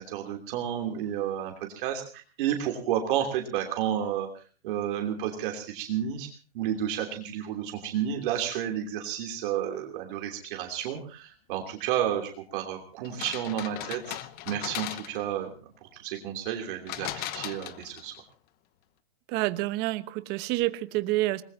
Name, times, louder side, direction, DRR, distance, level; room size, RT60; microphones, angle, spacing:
voice 1, 0.0-6.3 6.5-14.2 14.5-15.5 15.8-18.1, right 10 dB, 55° right, 3 dB, 3.1 m, -31 dB
sound 1, 13.0-15.4 16.9-18.2, left 14 dB, 30° left, 1.0 m, -37 dB
voice 2, 19.3-21.4, right 18 dB, 35° right, 13 dB, 1.1 m, -28 dB
25.5 x 20.5 x 2.8 m, 0.38 s
hypercardioid pair, 145°, 30 cm